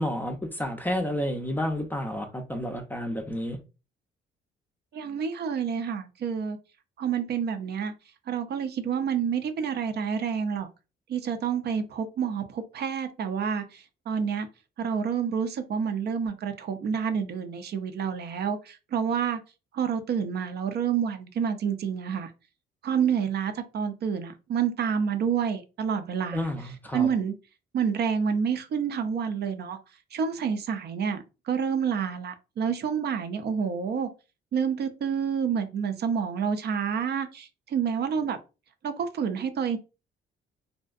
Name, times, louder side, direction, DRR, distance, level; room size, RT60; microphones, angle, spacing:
voice 1, 0.0-3.6 26.3-27.1, equal, 10° left, 0.4 m, -30 dB
voice 2, 4.9-6.6 7.0-7.9 8.3-10.7 11.1-14.5 14.8-19.4 19.7-22.3 22.8-27.3 27.7-29.8 30.1-34.1 34.5-38.4 38.8-39.8, right 7 dB, 55° right, 0.5 m, -28 dB
2.6 x 2.1 x 2.4 m
cardioid pair, 90°, 20 cm